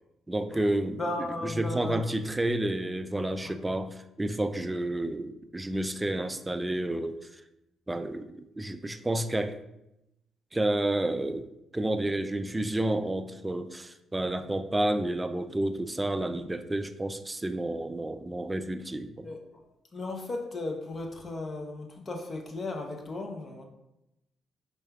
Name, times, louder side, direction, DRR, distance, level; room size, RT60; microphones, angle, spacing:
voice 1, 0.3-1.0 1.4-7.2 7.9-9.6 10.5-11.5 11.7-19.3, right 1 dB, 15° right, 10 dB, 0.3 m, -30 dB
voice 2, 1.0-2.0 3.4-3.5 19.2-19.6 19.9-23.6, left 2 dB, 35° left, 2 dB, 0.8 m, -35 dB
4.9 x 4.3 x 2.3 m, 0.88 s
cardioid pair, 90°, 0 cm